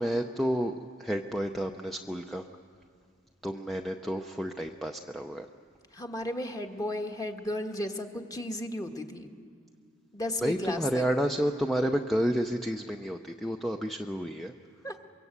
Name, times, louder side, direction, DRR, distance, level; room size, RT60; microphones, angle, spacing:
voice 1, 0.0-2.4 3.4-5.5 10.4-14.5, equal, ahead, 4 dB, 0.6 m, -30 dB
voice 2, 5.9-9.3 10.1-11.0 14.8-14.9, left 1 dB, 20° left, 3 dB, 1.5 m, -34 dB
24.0 x 23.0 x 8.2 m, 2.1 s
head